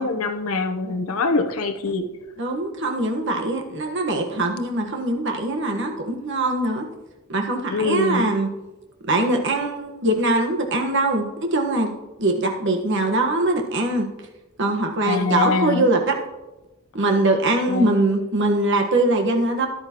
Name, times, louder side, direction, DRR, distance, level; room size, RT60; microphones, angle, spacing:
voice 1, 0.0-2.1 7.7-8.3 15.0-15.9 17.7-17.9, left 3 dB, 80° left, 4 dB, 0.9 m, -24 dB
voice 2, 2.4-6.8 7.3-8.5 9.1-11.9 12.2-14.1 14.6-16.1 16.9-19.7, right 2 dB, 60° right, 2 dB, 1.4 m, -22 dB
13.5 x 11.0 x 3.0 m, 1.0 s
head